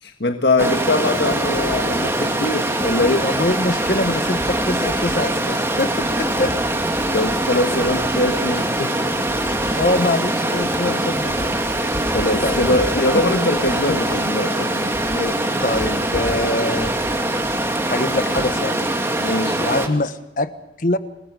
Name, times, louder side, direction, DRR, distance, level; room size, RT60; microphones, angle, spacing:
voice 1, 0.0-3.3 7.1-8.9 12.1-14.5 19.2-19.6, left 2 dB, 70° left, 4 dB, 1.6 m, -22 dB
Stream, 0.6-19.9, right 1 dB, 15° right, 2.4 m, -22 dB
voice 2, 3.2-6.5 9.7-11.5 12.4-12.6 13.0-13.2 13.9-14.0 14.6-16.9 17.9-18.9 19.6-20.5 20.8-21.0, left 2 dB, 50° left, 11 dB, 1.3 m, -24 dB
27.0 x 21.0 x 5.4 m, 0.90 s
head